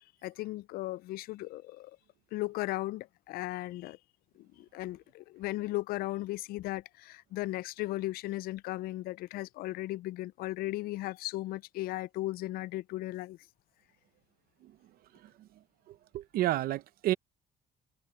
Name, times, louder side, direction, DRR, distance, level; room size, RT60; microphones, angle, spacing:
voice 1, 0.2-2.0 2.3-4.0 4.4-13.4, left 17 dB, 85° left, 0.4 m, -36 dB
voice 2, 15.1-15.5 15.9-17.1, right 14 dB, 80° right, 0.8 m, -32 dB
cardioid pair, 115°, 15 cm